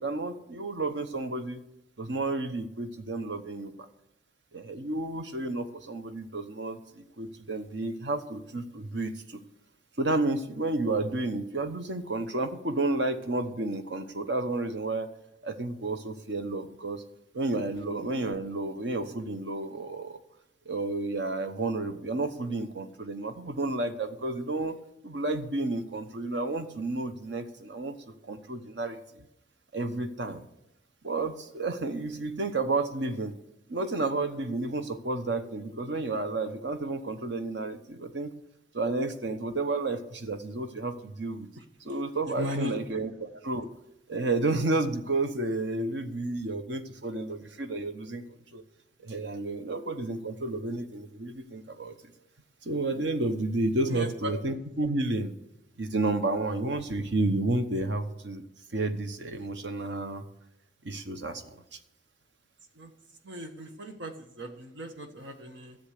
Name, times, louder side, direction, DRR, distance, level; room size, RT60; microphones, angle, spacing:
voice 1, 0.0-1.6 2.0-3.7 4.5-9.4 10.0-15.1 15.4-17.0 17.3-20.2 20.7-24.7 25.0-29.2 29.7-30.4 31.0-33.4 33.7-38.4 38.7-41.5 41.8-43.7 44.1-48.2 48.5-48.6 49.0-52.0 52.6-55.3 55.8-58.4 58.7-60.2 60.8-61.8, right 2 dB, 70° right, 9 dB, 1.0 m, -31 dB
voice 2, 42.2-43.0 53.9-54.3 62.8-62.9 63.2-65.8, equal, 90° right, 6 dB, 1.5 m, -37 dB
13.5 x 7.3 x 6.7 m, 0.84 s
head